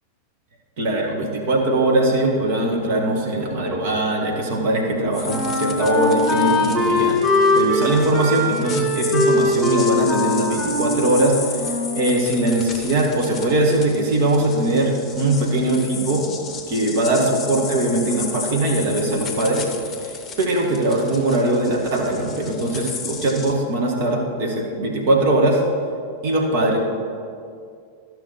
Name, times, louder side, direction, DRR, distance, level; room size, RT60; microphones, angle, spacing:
voice 1, 0.8-7.2 7.5-16.3 16.7-19.7 20.0-25.6 26.2-26.8, right 1 dB, 50° right, 0 dB, 1.6 m, -21 dB
Wind instrument woodwind instrument, 4.8-12.1, left 2 dB, ahead, 2.1 m, -21 dB
sound 1, 5.1-23.5, left 5 dB, 20° left, 0.9 m, -35 dB
13.0 x 6.4 x 4.3 m, 2.3 s
figure-of-eight pair, 90°, 0 cm